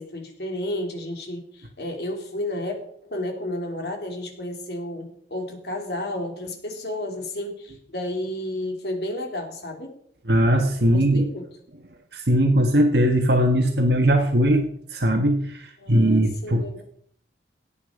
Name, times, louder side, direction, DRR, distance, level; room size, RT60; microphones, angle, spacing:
voice 1, 0.0-10.0 10.8-11.5 15.8-16.8, left 1 dB, 65° left, 3 dB, 3.3 m, -32 dB
voice 2, 10.3-11.3 12.1-16.8, equal, 65° right, 3 dB, 1.7 m, -20 dB
17.5 x 9.1 x 5.1 m, 0.62 s
head